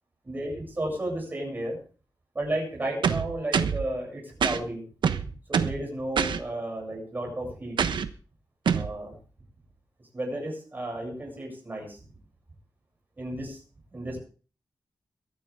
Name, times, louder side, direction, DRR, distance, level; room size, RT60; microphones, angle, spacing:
voice 1, 0.2-1.8 2.3-4.8 5.2-7.8 8.7-9.2 10.1-12.0 13.2-13.6 13.9-14.2, right 1 dB, 25° right, -1 dB, 7.8 m, -33 dB
sound 1, 3.0-3.8 4.4-4.6 5.0-5.8 6.2-6.4 7.8-8.1 8.7-8.9, right 7 dB, 90° right, 1.1 m, -25 dB
23.0 x 10.5 x 3.7 m, 0.39 s
wide cardioid pair, 165°, 8 cm